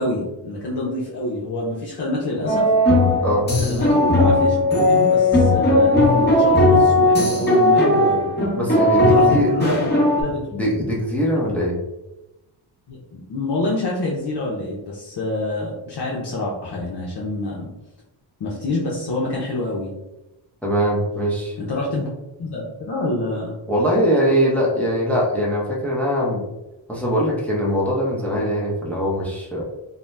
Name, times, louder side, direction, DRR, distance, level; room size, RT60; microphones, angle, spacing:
voice 1, 0.0-2.7 3.6-4.6 4.8-8.3 9.0-9.9 10.2-10.5 11.5-11.6 12.9-17.7 18.4-19.9 21.6-22.1 22.4-23.5 28.3-28.4, left 2 dB, 55° left, -4 dB, 0.7 m, -27 dB
sound 1, 2.5-10.2, left 1 dB, 20° left, 1.1 m, -17 dB
voice 2, 8.5-9.5 10.5-11.8 20.6-21.6 23.7-26.5 26.9-29.6, equal, 5° left, -3 dB, 0.7 m, -21 dB
2.7 x 2.1 x 3.2 m, 0.97 s
cardioid pair, 80°, 48 cm